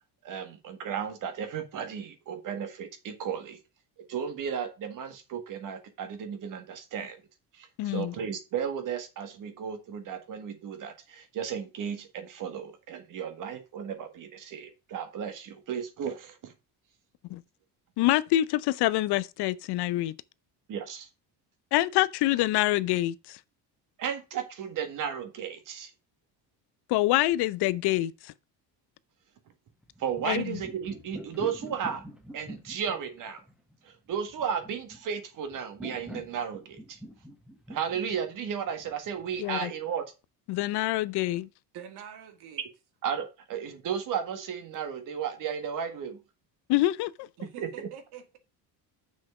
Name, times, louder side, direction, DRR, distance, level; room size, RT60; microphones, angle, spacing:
voice 1, 0.2-3.6 4.1-7.2 7.5-16.5 20.7-21.1 24.0-25.9 30.0-32.0 32.3-33.4 33.9-37.0 37.7-40.0 43.0-46.2 47.6-47.9, right 7 dB, 50° right, 1.8 m, -34 dB
voice 2, 7.8-8.1 17.3-17.4 18.0-20.1 21.7-23.4 26.9-28.3 30.2-30.6 39.4-39.7 40.5-41.5 46.7-47.1, left 16 dB, 70° left, 0.7 m, -26 dB
sound 1, 29.8-39.5, equal, ahead, 1.3 m, -46 dB
voice 3, 41.7-42.6 47.4-48.4, right 9 dB, 70° right, 2.0 m, -45 dB
7.4 x 6.2 x 4.8 m
cardioid pair, 165°, 40 cm